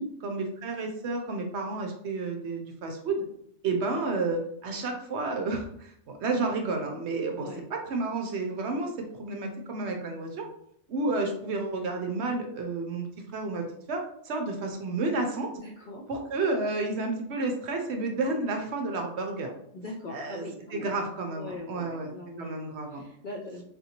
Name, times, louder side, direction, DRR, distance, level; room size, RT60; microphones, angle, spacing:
voice 1, 0.2-3.2 3.6-10.5 10.9-13.1 13.3-15.5 16.1-19.5 20.1-20.4 20.7-22.1 22.4-23.0, right 3 dB, 65° right, 3 dB, 0.8 m, -31 dB
voice 2, 15.5-16.1 19.7-20.9 21.3-23.6, left 1 dB, 65° left, -2 dB, 0.5 m, -40 dB
3.7 x 2.6 x 2.8 m, 0.70 s
omnidirectional pair, 1.4 m